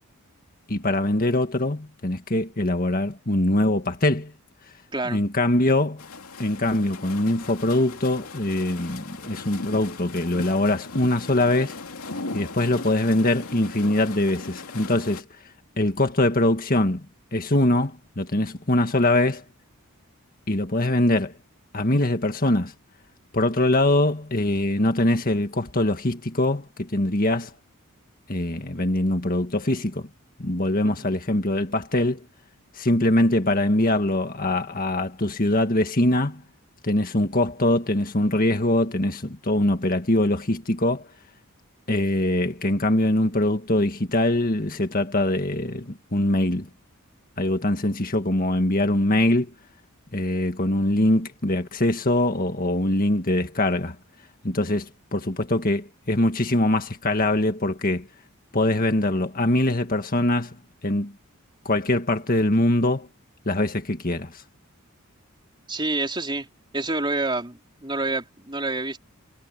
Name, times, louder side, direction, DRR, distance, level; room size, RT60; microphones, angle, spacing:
voice 1, 0.7-4.3 5.1-6.0 6.4-11.8 12.3-15.2 15.8-17.0 17.3-19.4 20.5-21.3 21.7-22.7 23.3-27.5 28.3-30.1 30.4-32.2 32.8-36.4 36.8-41.1 41.9-46.7 47.4-49.5 50.1-54.0 54.4-58.1 58.5-60.6 60.8-61.1 61.7-63.1 63.5-64.4, left 1 dB, 40° left, 1.9 m, -23 dB
voice 2, 4.9-5.2 30.8-31.1 65.7-66.5 66.7-69.0, right 2 dB, 20° right, 3.8 m, -28 dB
sound 1, 6.0-15.2, left 3 dB, 85° left, 2.7 m, -38 dB
head